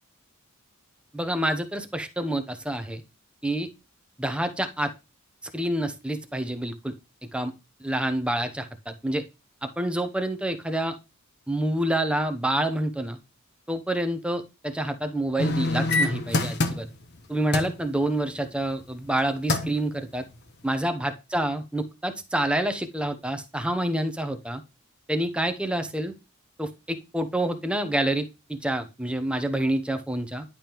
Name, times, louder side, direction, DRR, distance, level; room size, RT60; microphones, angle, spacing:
voice 1, 1.1-3.0 3.4-3.7 4.2-4.9 5.5-6.9 7.3-7.5 7.8-9.2 9.6-11.0 11.5-13.2 13.7-16.9 17.3-20.3 20.6-24.6 25.1-26.1 26.6-30.4, right 1 dB, 5° right, 7 dB, 0.7 m, -27 dB
sound 1, 15.4-17.2 17.5-17.8 19.1-19.2 19.5-19.8 20.3-20.4, left 2 dB, 50° left, 1.0 m, -25 dB
10.5 x 5.2 x 3.0 m, 0.27 s
head